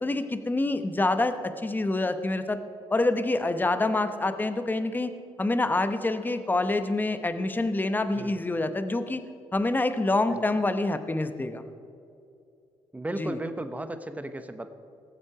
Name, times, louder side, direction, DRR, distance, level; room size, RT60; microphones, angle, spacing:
voice 1, 0.0-2.6 2.9-9.2 9.5-11.6 13.2-13.4, left 2 dB, 15° left, 9 dB, 0.9 m, -26 dB
voice 2, 8.1-8.4 10.3-10.6 12.9-14.7, right 1 dB, 15° right, 9 dB, 1.0 m, -35 dB
18.5 x 7.4 x 4.9 m, 2.6 s
supercardioid pair, 70°, 11 cm